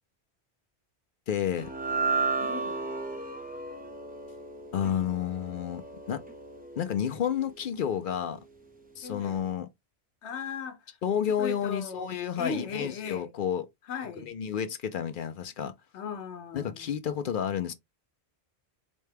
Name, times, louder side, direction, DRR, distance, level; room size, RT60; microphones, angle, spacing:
voice 1, 1.3-1.7 4.7-5.8 6.1-6.2 6.8-8.4 9.0-9.7 11.0-13.7 14.2-15.7 16.5-17.7, left 8 dB, 60° left, 0.6 m, -30 dB
sound 1, 1.6-8.0, right 4 dB, 10° right, 0.7 m, -34 dB
voice 2, 2.4-2.9 9.0-9.4 10.2-10.9 11.4-12.1 12.4-13.3 13.9-14.3 15.9-16.9, left 6 dB, 85° left, 1.0 m, -37 dB
4.1 x 2.2 x 3.3 m
omnidirectional pair, 1.1 m